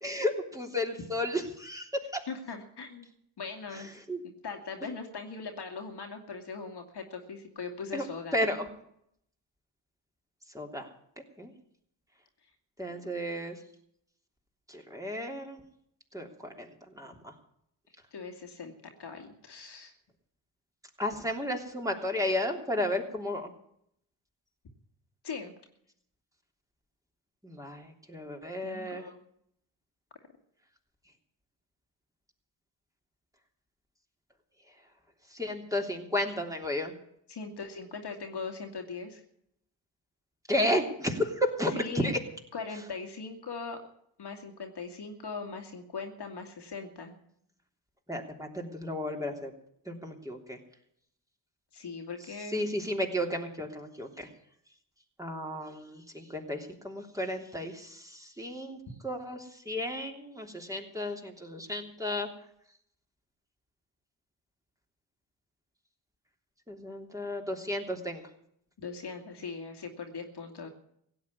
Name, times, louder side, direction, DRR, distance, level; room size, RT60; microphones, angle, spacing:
voice 1, 0.0-2.2 3.7-4.2 7.9-8.1 8.3-8.7 10.5-10.9 11.4-11.5 12.8-13.5 14.7-15.6 16.1-16.7 16.9-17.3 21.0-23.5 27.4-29.1 35.3-36.9 40.5-42.2 48.1-49.5 49.8-50.6 52.5-54.3 55.2-58.8 59.0-62.3 66.7-68.2, left 1 dB, 5° right, 2 dB, 3.2 m, -33 dB
voice 2, 2.3-3.1 3.4-3.9 4.4-8.4 12.9-13.0 18.1-19.9 25.2-25.5 28.6-29.1 37.3-39.2 41.7-42.1 42.5-43.8 44.2-47.1 51.7-52.7 68.8-70.7, left 4 dB, 50° left, 3 dB, 2.4 m, -40 dB
16.5 x 7.9 x 9.7 m, 0.71 s
hypercardioid pair, 40°, 50 cm